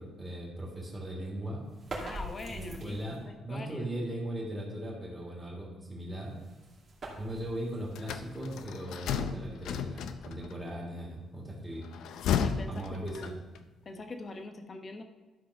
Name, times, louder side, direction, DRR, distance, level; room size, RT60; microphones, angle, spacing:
voice 1, 0.0-1.6 2.5-6.3 7.2-11.9 12.7-13.3, right 1 dB, 10° right, -2 dB, 2.9 m, -38 dB
sound 1, 1.7-3.3 6.0-9.0, right 1 dB, 40° right, 2.6 m, -44 dB
voice 2, 2.0-3.9 12.3-13.5 13.8-15.0, left 2 dB, 30° left, 6 dB, 1.0 m, -43 dB
sound 2, 8.0-10.5 11.8-13.6, left 7 dB, 80° left, 0.5 m, -33 dB
12.0 x 5.2 x 5.7 m, 1.2 s
cardioid pair, 130°, 0 cm